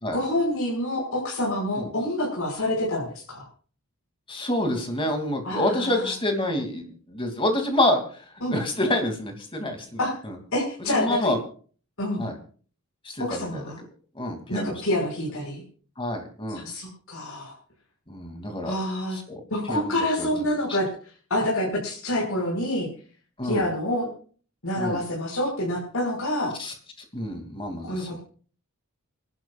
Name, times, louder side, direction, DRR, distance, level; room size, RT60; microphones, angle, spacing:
voice 1, 0.1-3.5 5.4-6.1 8.4-8.6 10.0-10.1 10.5-11.3 12.0-12.2 13.2-13.8 14.5-15.6 16.5-17.5 18.6-19.2 19.5-20.9 21.3-22.9 23.4-24.1 24.6-26.5 27.9-28.2, left 1 dB, 65° left, -4 dB, 6.1 m, -27 dB
voice 2, 4.3-8.2 8.5-10.3 10.8-11.4 12.2-12.3 13.0-13.6 14.1-14.7 16.0-16.6 18.1-18.7 19.1-19.4 19.7-20.8 23.4-23.7 24.7-25.0 26.6-26.7 27.1-28.2, left 1 dB, 25° left, 4 dB, 2.9 m, -28 dB
29.0 x 11.5 x 2.5 m, 0.42 s
head